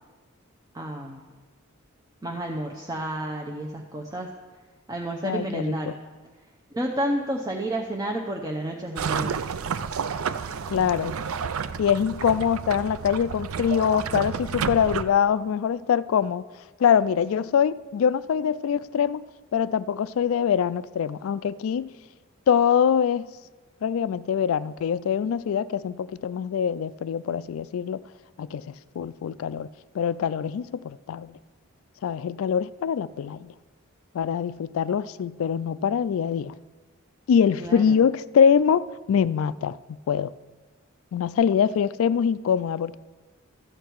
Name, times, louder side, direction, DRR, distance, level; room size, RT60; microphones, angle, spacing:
voice 1, 0.7-1.2 2.2-4.3 4.9-5.9 6.7-9.5 37.6-38.0, right 1 dB, 20° right, 0.7 m, -30 dB
voice 2, 5.2-5.9 10.7-11.1 11.8-16.5 16.8-19.2 19.5-21.9 22.5-23.3 23.8-28.0 28.4-29.7 29.9-31.4 32.0-33.5 34.1-36.5 37.3-40.3 41.1-43.0, left 7 dB, 70° left, 0.3 m, -24 dB
sound 1, 9.0-15.0, right 6 dB, 80° right, 0.5 m, -30 dB
13.5 x 8.5 x 4.6 m
head